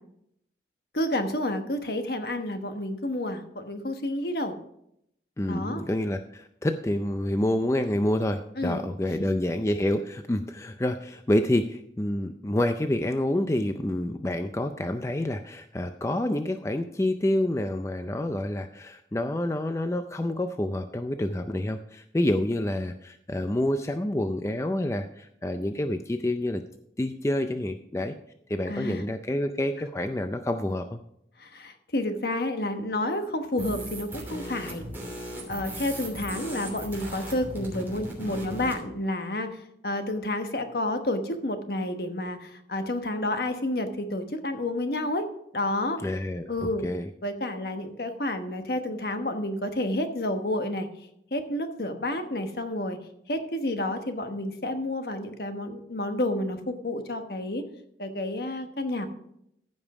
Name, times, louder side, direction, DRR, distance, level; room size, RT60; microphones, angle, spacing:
voice 1, 0.9-4.5 5.5-5.8 8.6-8.8 28.7-29.0 31.4-34.8 35.5-45.3 45.5-46.0 46.5-46.9 47.2-50.9 51.3-53.0 53.3-57.6 58.0-59.1, left 1 dB, 60° left, 7 dB, 1.2 m, -30 dB
voice 2, 5.4-26.6 27.0-28.1 28.5-31.0 46.0-47.1, left 1 dB, 15° left, 8 dB, 0.4 m, -28 dB
sound 1, 33.6-38.8, right 1 dB, 10° right, 3.0 m, -37 dB
14.5 x 5.4 x 4.8 m, 0.74 s
head